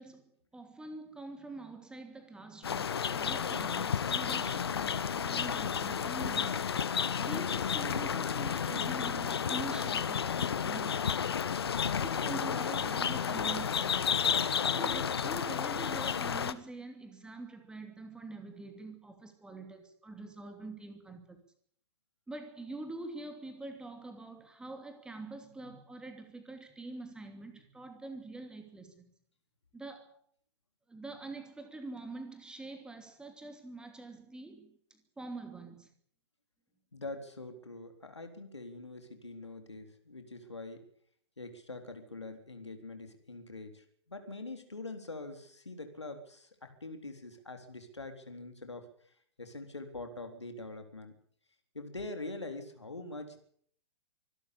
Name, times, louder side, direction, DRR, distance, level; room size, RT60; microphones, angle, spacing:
voice 1, 0.0-6.8 7.2-11.4 12.0-14.1 14.7-21.4 22.3-29.1 29.7-30.1 30.9-35.9, right 2 dB, 5° right, 2.8 m, -45 dB
sound 1, 2.6-16.5, left 7 dB, 65° left, 1.3 m, -32 dB
voice 2, 36.9-40.8 41.4-51.1 51.7-53.4, left 2 dB, 80° left, 3.9 m, -44 dB
24.5 x 13.0 x 8.7 m
figure-of-eight pair, 115°, 14 cm